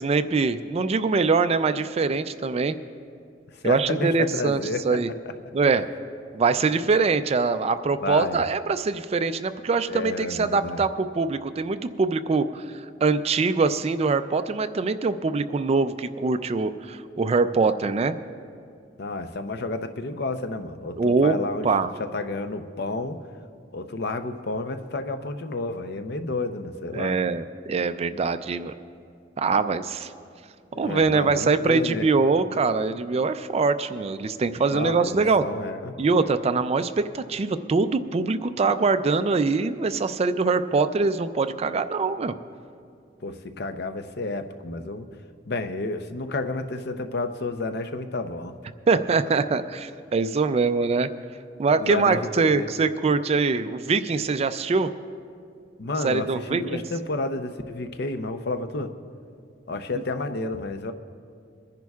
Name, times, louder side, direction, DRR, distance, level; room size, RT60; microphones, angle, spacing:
voice 1, 0.0-2.7 3.6-5.1 5.5-5.9 6.3-12.7 13.0-18.2 21.0-21.4 21.6-21.9 26.9-28.7 29.4-30.1 30.8-35.4 36.0-42.3 48.9-51.1 51.6-54.9 56.0-56.8, right 4 dB, 35° right, 11 dB, 0.4 m, -23 dB
voice 2, 3.5-5.0 8.0-8.5 9.9-10.8 19.0-23.2 23.7-27.2 30.7-32.0 34.7-35.9 43.2-45.0 45.5-48.6 51.8-52.7 55.8-58.9 59.7-60.9, left 2 dB, 60° left, 8 dB, 0.6 m, -31 dB
27.5 x 10.5 x 2.4 m, 2.3 s
head